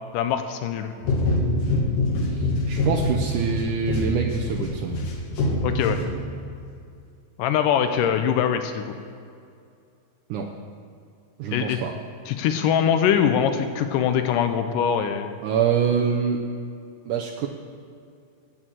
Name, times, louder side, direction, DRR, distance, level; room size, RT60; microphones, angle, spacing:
voice 1, 0.1-0.9 5.6-6.0 7.4-8.8 11.5-11.8 12.3-15.3, left 8 dB, 80° left, 8 dB, 1.9 m, -22 dB
sound 1, 1.0-6.6, left 2 dB, 65° left, 2.6 m, -25 dB
voice 2, 2.3-5.0 10.3-10.5 11.4-11.9 15.4-16.4 17.1-17.5, right 7 dB, 90° right, 1 dB, 1.8 m, -25 dB
11.0 x 8.7 x 7.4 m, 2.4 s
omnidirectional pair, 4.5 m